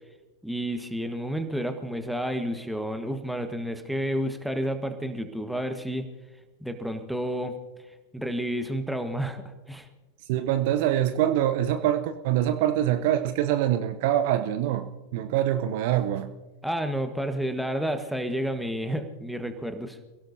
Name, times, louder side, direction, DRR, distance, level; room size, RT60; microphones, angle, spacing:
voice 1, 0.4-6.0 6.6-7.5 8.1-9.4 9.7-9.9 16.6-20.0, equal, ahead, 7 dB, 1.5 m, -30 dB
voice 2, 10.3-14.9 15.1-16.3, right 11 dB, 50° right, 10 dB, 0.8 m, -24 dB
28.5 x 17.0 x 2.8 m, 1.2 s
figure-of-eight pair, 90°, 0 cm